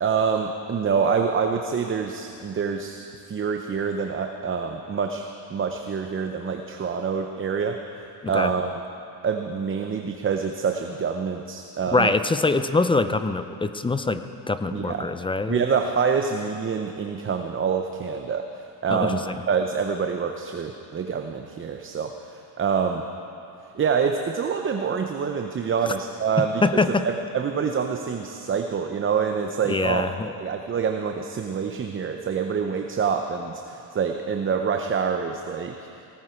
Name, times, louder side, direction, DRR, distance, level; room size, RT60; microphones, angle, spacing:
voice 1, 0.0-5.2 5.5-8.7 9.2-12.1 14.7-15.1 15.5-23.0 23.7-30.0 30.4-35.8, right 6 dB, 30° right, 4 dB, 0.8 m, -26 dB
voice 2, 11.9-15.6 18.9-19.4 25.9-26.0 26.4-27.1 29.7-30.4, left 3 dB, 10° left, 10 dB, 0.4 m, -24 dB
18.0 x 14.5 x 4.5 m, 2.7 s
cardioid pair, 105°, 44 cm